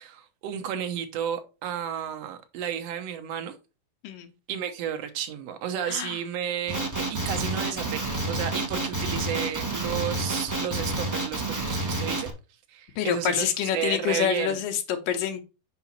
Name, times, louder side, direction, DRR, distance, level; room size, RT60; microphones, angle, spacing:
voice 1, 0.0-3.6 4.5-12.3 12.7-14.6, right 9 dB, 65° right, 1.8 m, -32 dB
voice 2, 5.9-6.2 13.0-15.4, left 9 dB, 85° left, 2.7 m, -27 dB
Male speech man speaking, 6.7-12.3, right 2 dB, 15° right, 0.6 m, -29 dB
6.0 x 5.7 x 4.2 m
omnidirectional pair, 3.8 m